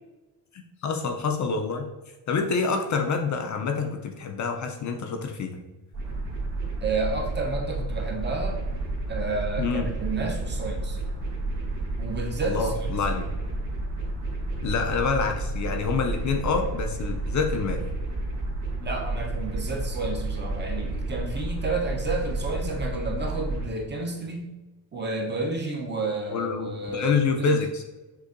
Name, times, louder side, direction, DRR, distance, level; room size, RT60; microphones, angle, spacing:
voice 1, 0.5-1.9 2.3-5.6 9.6-9.9 12.4-13.3 14.6-17.8 26.3-27.8, left 5 dB, 45° left, 4 dB, 0.4 m, -27 dB
sound 1, 5.9-23.7, right 2 dB, 40° right, 1.5 m, -31 dB
voice 2, 6.8-8.6 9.1-11.0 12.0-12.7 18.8-24.5 24.9-27.6, right 2 dB, 25° right, 1 dB, 0.6 m, -31 dB
6.5 x 2.6 x 2.5 m, 1.1 s
cardioid pair, 155°, 43 cm